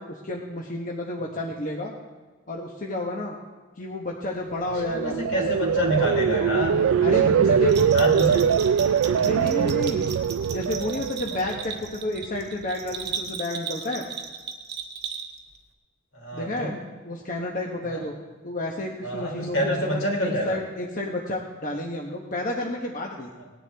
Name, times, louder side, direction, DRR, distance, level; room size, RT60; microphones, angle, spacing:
voice 1, 0.0-1.9 2.5-3.4 3.8-5.2 7.0-7.7 9.1-10.1 10.5-14.1 16.3-16.8 17.0-18.1 18.4-23.3, left 1 dB, 40° left, -1 dB, 1.1 m, -31 dB
voice 2, 4.7-8.5 16.1-16.8 17.8-18.1 19.0-20.6 23.4-23.5, left 1 dB, 75° left, -1 dB, 3.2 m, -28 dB
sound 1, 4.7-11.8 12.2-12.6, right 7 dB, 80° right, 0.3 m, -22 dB
Bell, 7.7-15.6, right 6 dB, 55° right, 1.1 m, -36 dB
18.5 x 10.5 x 3.5 m, 1.4 s
head